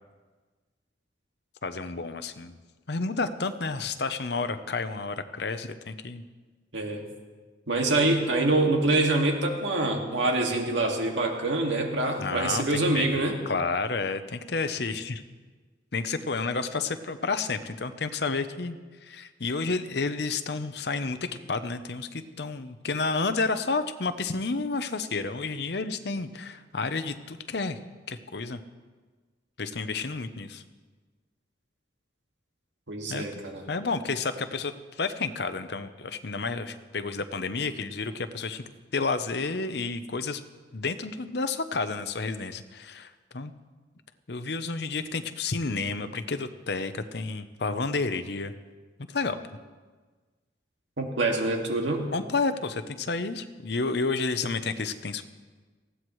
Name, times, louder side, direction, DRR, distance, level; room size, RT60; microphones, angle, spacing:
voice 1, 1.6-2.6 2.9-6.2 12.2-13.1 13.5-15.2 15.9-27.8 28.1-28.6 29.6-30.6 33.1-33.4 33.7-38.6 38.9-40.4 40.7-43.5 44.3-48.5 49.1-49.4 52.1-55.3, left 4 dB, 60° left, 10 dB, 0.7 m, -30 dB
voice 2, 6.7-7.0 7.7-13.4 32.9-33.6 51.0-52.0, right 2 dB, 80° right, 1 dB, 2.0 m, -25 dB
19.5 x 15.5 x 3.2 m, 1.4 s
head